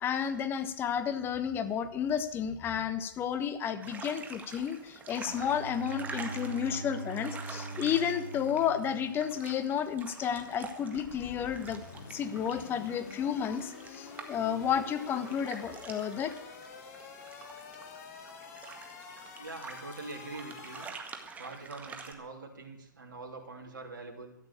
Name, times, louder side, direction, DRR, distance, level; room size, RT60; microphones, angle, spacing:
voice 1, 0.0-11.8 12.1-16.3, left 8 dB, 20° left, 12 dB, 1.2 m, -32 dB
sound 1, 3.8-22.1, right 5 dB, 15° right, 1.8 m, -47 dB
Bowed string instrument, 5.2-9.9, right 3 dB, 45° right, 1.9 m, -43 dB
sound 2, 10.9-20.9, left 6 dB, 50° left, 2.5 m, -48 dB
voice 2, 19.4-20.9 21.4-24.4, right 3 dB, 70° right, 1 dB, 3.3 m, -44 dB
13.5 x 9.5 x 8.2 m, 0.76 s
hypercardioid pair, 125°, 11 cm